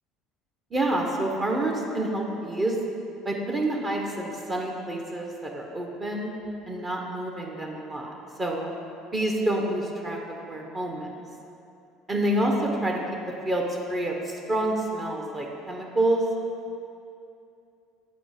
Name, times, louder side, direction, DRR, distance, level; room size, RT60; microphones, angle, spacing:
voice 1, 0.7-2.8 3.2-6.3 6.7-8.1 8.4-8.7 9.1-11.1 12.1-13.0 13.4-16.2, right 1 dB, 30° right, 0 dB, 1.0 m, -28 dB
8.3 x 4.2 x 5.1 m, 2.6 s
hypercardioid pair, 65°, 0 cm